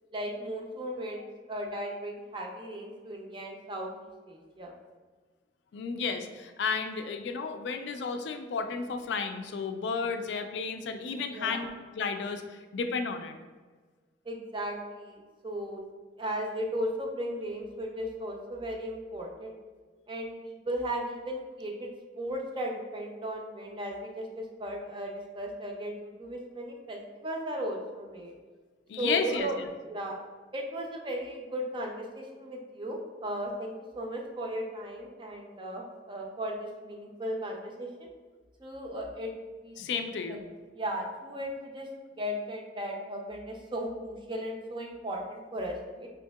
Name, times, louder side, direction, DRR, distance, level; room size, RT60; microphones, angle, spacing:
voice 1, 0.1-3.9 4.3-4.7 11.3-11.7 14.3-15.8 16.2-19.5 20.1-21.9 22.2-28.3 29.0-29.6 29.8-30.2 30.5-37.9 38.6-39.3 39.6-40.4 40.7-41.9 42.2-46.1, equal, 25° right, 0 dB, 0.5 m, -36 dB
voice 2, 5.7-11.7 12.0-13.4 28.9-29.7 39.8-40.4, left 5 dB, 65° left, 7 dB, 0.3 m, -32 dB
5.1 x 2.7 x 2.3 m, 1.4 s
head